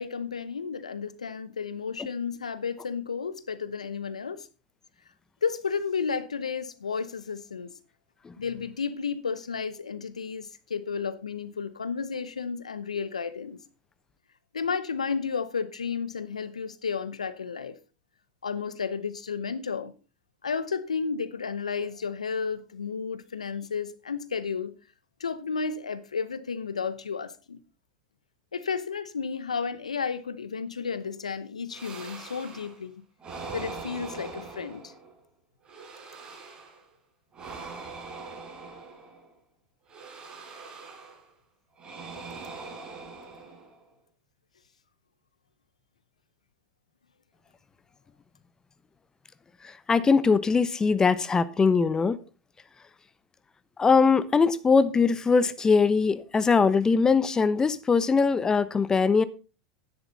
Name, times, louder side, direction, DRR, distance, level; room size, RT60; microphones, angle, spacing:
voice 1, 0.0-4.5 5.4-7.7 8.4-13.6 14.5-17.8 18.4-19.9 20.4-24.7 25.2-27.6 28.5-32.9 33.5-34.9, left 5 dB, 85° left, 0.9 m, -32 dB
sound 1, 31.7-32.8 33.2-35.2 35.6-36.9 37.3-39.3 39.9-41.3 41.8-43.9, right 4 dB, 25° right, 4.8 m, -42 dB
voice 2, 49.6-52.2 53.8-59.2, left 5 dB, 20° left, 0.9 m, -22 dB
12.0 x 10.0 x 4.0 m
hypercardioid pair, 85°, 3 cm